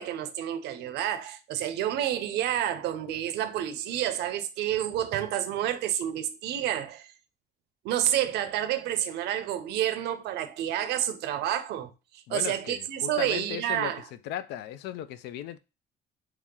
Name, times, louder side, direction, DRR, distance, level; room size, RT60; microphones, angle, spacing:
voice 1, 0.0-7.1 7.8-14.0, right 11 dB, 80° right, 0.6 m, -29 dB
voice 2, 12.3-13.9 14.2-15.6, left 11 dB, 80° left, 0.4 m, -36 dB
3.1 x 2.9 x 3.7 m
cardioid pair, 110°, 17 cm